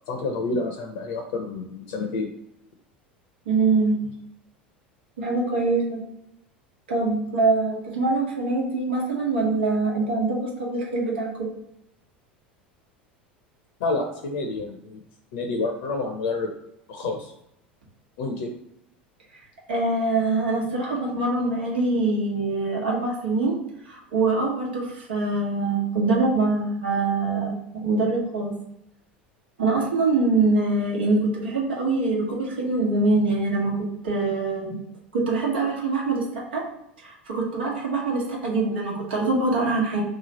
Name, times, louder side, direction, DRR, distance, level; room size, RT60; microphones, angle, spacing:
voice 1, 0.1-2.3 13.8-15.0 15.3-16.5 16.9-17.3 18.2-18.5, left 3 dB, 60° left, 3 dB, 0.6 m, -28 dB
voice 2, 3.5-4.1 5.2-6.0 6.9-11.5 19.7-23.6 23.9-28.5 29.6-34.8 35.1-36.6 37.0-40.0, right 3 dB, 75° right, -3 dB, 1.2 m, -24 dB
3.1 x 2.3 x 4.0 m, 0.79 s
figure-of-eight pair, 75°, 6 cm